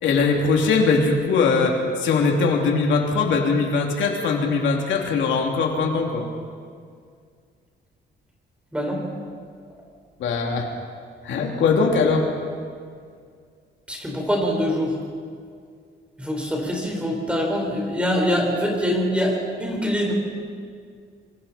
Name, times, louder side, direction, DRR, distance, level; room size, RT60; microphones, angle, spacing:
voice 1, 0.0-6.2 10.2-10.7 11.2-12.3, left 4 dB, 90° left, 1 dB, 3.0 m, -21 dB
voice 2, 8.7-9.0 13.9-15.0 16.2-20.1, equal, 5° right, -1 dB, 4.7 m, -24 dB
26.0 x 25.0 x 4.4 m, 2.1 s
cardioid pair, 155°, 19 cm